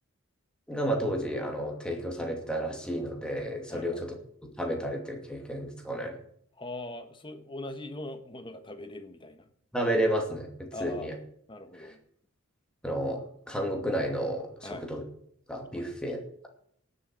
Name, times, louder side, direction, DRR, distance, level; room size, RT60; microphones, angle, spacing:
voice 1, 0.7-4.1 4.4-6.2 9.7-11.1 11.7-11.9 12.8-15.0 15.5-16.5, right 1 dB, 5° left, 2 dB, 2.5 m, -32 dB
voice 2, 3.7-4.1 6.6-9.5 10.7-11.1 11.5-12.0 14.6-14.8 15.7-15.9, left 2 dB, 25° left, 8 dB, 1.3 m, -41 dB
18.0 x 7.0 x 6.3 m, 0.65 s
head